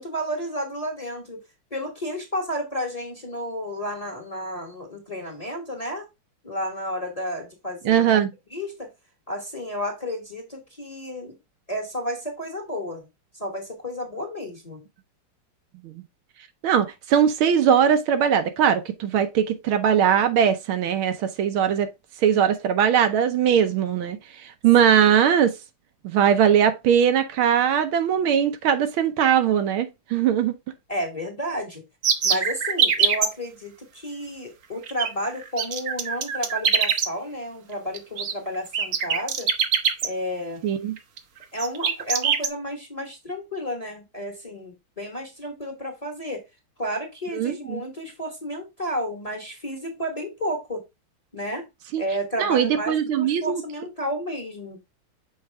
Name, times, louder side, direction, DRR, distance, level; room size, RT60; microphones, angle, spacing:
voice 1, 0.0-1.4 1.7-6.1 6.4-8.1 8.5-8.9 9.3-11.4 11.7-13.1 13.3-14.8 30.9-31.8 32.2-39.5 40.0-40.6 41.5-46.4 46.8-50.8 51.3-51.6 52.0-54.8, equal, 20° left, 1.3 m, -31 dB
voice 2, 7.8-8.3 16.6-21.9 22.2-25.5 26.0-30.5 40.6-40.9 47.3-47.8 51.9-52.0 52.4-53.6, right 8 dB, 75° right, 1.6 m, -20 dB
sound 1, 32.0-33.3 34.8-35.1 35.4-37.1 37.9-38.3 38.7-40.1 41.0-41.2 41.6-42.5, right 7 dB, 60° right, 1.0 m, -22 dB
6.5 x 4.6 x 3.4 m
omnidirectional pair, 2.4 m